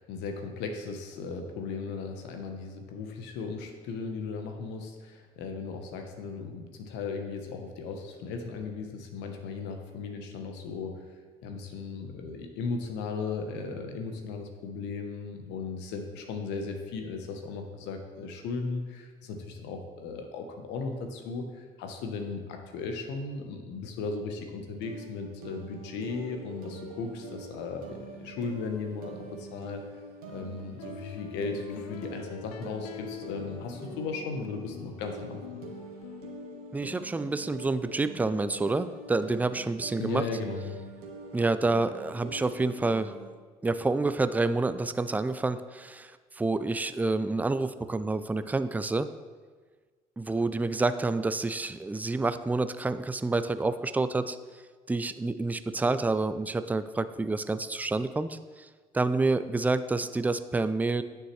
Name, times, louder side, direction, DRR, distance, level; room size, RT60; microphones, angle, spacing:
voice 1, 0.0-11.0 11.4-29.8 30.3-35.6 40.0-40.8, left 4 dB, 70° left, 4 dB, 1.0 m, -36 dB
sound 1, 24.7-43.3, right 3 dB, 85° right, 1.1 m, -45 dB
sound 2, 30.3-37.4, left 12 dB, 85° left, 0.4 m, -47 dB
voice 2, 36.7-40.2 41.3-43.2 43.6-46.1 46.4-49.1 50.2-54.4 54.9-58.4 58.9-61.0, right 3 dB, 10° right, 12 dB, 0.4 m, -28 dB
9.0 x 6.9 x 3.2 m, 1.4 s
hypercardioid pair, 60°, 19 cm